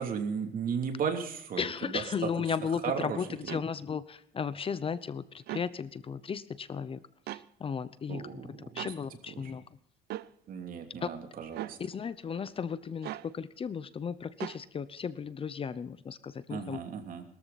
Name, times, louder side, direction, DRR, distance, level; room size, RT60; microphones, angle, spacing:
voice 1, 0.0-1.9 2.8-3.2 8.1-8.9 9.4-9.5 10.5-11.8 16.5-17.2, right 7 dB, 55° right, 5 dB, 3.0 m, -35 dB
voice 2, 1.6-7.0 7.3-9.6 11.0-11.1 11.8-16.8, left 6 dB, 35° left, 16 dB, 0.8 m, -35 dB
sound 1, 3.5-3.7 5.4-5.7 7.3-7.5 8.8-9.0 10.1-10.3 11.5-11.8 13.0-13.3 14.4-14.6, right 14 dB, 75° right, 0.7 m, -38 dB
21.5 x 13.5 x 4.2 m, 0.71 s
cardioid pair, 110°, 17 cm